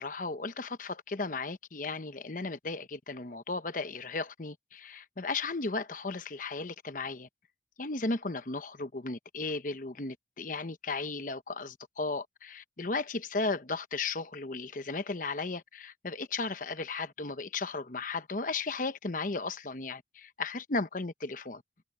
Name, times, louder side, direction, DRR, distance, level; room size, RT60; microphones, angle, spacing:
voice 1, 0.0-7.3 7.8-21.6, left 3 dB, 50° left, 1.0 m, -35 dB
head